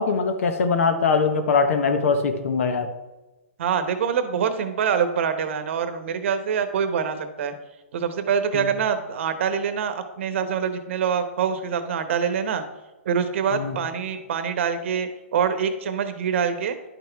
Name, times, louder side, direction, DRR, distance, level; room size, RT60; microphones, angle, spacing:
voice 1, 0.0-2.9 8.5-8.7 13.5-13.8, left 5 dB, 70° left, 8 dB, 1.2 m, -22 dB
voice 2, 3.6-7.5 7.9-12.6 13.0-16.7, right 7 dB, 60° right, 9 dB, 1.1 m, -25 dB
10.5 x 6.0 x 3.5 m, 1.1 s
hypercardioid pair, 150°, 8 cm